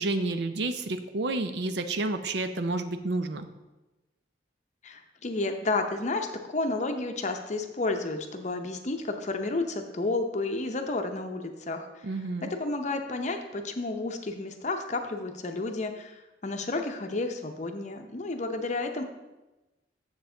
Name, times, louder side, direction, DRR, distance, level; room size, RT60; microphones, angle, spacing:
voice 1, 0.0-3.5 12.0-12.5, right 2 dB, 60° right, 9 dB, 0.5 m, -30 dB
voice 2, 4.8-12.1 12.4-19.0, left 2 dB, 40° left, 5 dB, 0.7 m, -31 dB
7.2 x 7.1 x 3.8 m, 1.1 s
head